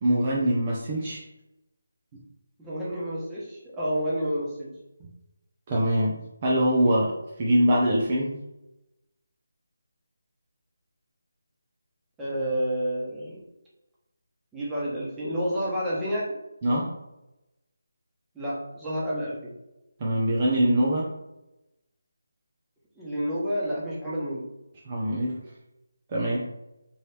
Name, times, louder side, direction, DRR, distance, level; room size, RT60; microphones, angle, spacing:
voice 1, 0.0-1.2 2.1-2.2 5.0-5.1 5.7-8.4 16.6-16.9 20.0-21.1 24.9-25.4 26.1-26.5, equal, 25° right, -5 dB, 0.8 m, -24 dB
voice 2, 2.6-4.7 12.2-13.4 14.5-16.2 18.3-19.5 23.0-24.4, equal, 10° right, -8 dB, 1.2 m, -29 dB
4.4 x 3.0 x 3.4 m, 0.95 s
figure-of-eight pair, 165°, 0 cm